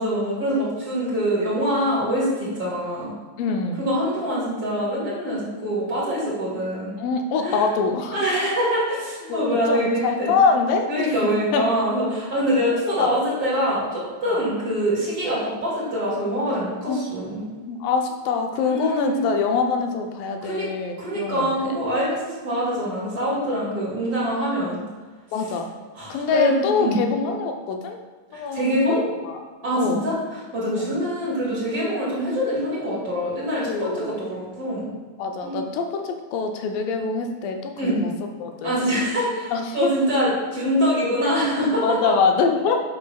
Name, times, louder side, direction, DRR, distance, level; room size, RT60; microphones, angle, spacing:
voice 1, 0.0-3.1 3.8-6.9 7.4-7.6 8.1-10.3 10.9-17.6 18.6-19.3 20.4-20.7 21.0-24.8 25.9-27.0 28.3-29.0 29.6-34.9 35.4-35.6 37.8-38.0 38.6-41.9, equal, 30° right, -7 dB, 2.3 m, -24 dB
voice 2, 3.4-3.8 7.0-8.2 9.3-11.1 11.5-11.6 12.9-13.1 14.3-14.4 16.9-17.1 17.7-21.8 25.3-25.7 26.1-28.0 28.3-29.4 29.8-30.1 30.7-30.9 33.7-34.1 35.2-38.1 38.4-38.9 39.5-39.9 41.3-41.5 41.8-42.8, left 5 dB, 85° left, 4 dB, 2.4 m, -24 dB
8.2 x 6.5 x 2.3 m, 1.4 s
omnidirectional pair, 3.9 m